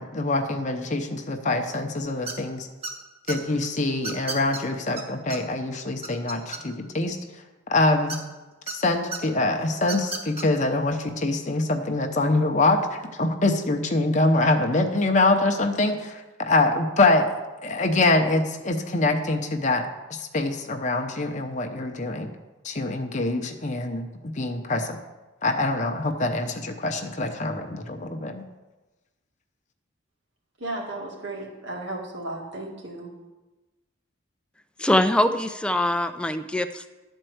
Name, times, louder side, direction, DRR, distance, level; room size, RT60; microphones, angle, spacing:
voice 1, 0.0-2.7 3.3-7.2 7.7-8.2 8.7-12.8 13.2-17.3 17.6-19.8 20.1-22.3 22.6-24.1 24.3-25.0 25.4-28.4, left 2 dB, 35° left, 4 dB, 0.7 m, -24 dB
sound 1, 2.3-2.5 2.8-3.4 4.0-4.6 5.0-5.1 5.3-5.4 5.7-6.9 8.1-8.7 9.1-9.2 9.8-10.4, right 3 dB, 30° right, 1.3 m, -33 dB
voice 2, 30.6-33.1, right 2 dB, 60° right, -1 dB, 2.1 m, -34 dB
voice 3, 34.8-36.9, left 1 dB, 5° left, 8 dB, 0.4 m, -23 dB
11.5 x 4.5 x 7.8 m, 1.1 s
head